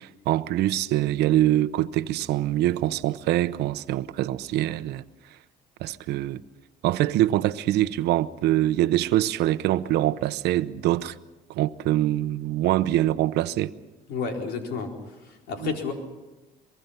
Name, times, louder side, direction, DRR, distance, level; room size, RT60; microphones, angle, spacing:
voice 1, 0.0-5.0 5.8-6.4 6.8-11.2 11.5-13.7 15.6-15.7, right 14 dB, 80° right, 0.8 m, -24 dB
voice 2, 14.1-14.9 15.5-15.9, left 5 dB, 80° left, 4.2 m, -30 dB
24.0 x 23.0 x 5.7 m
cardioid pair, 110°, 17 cm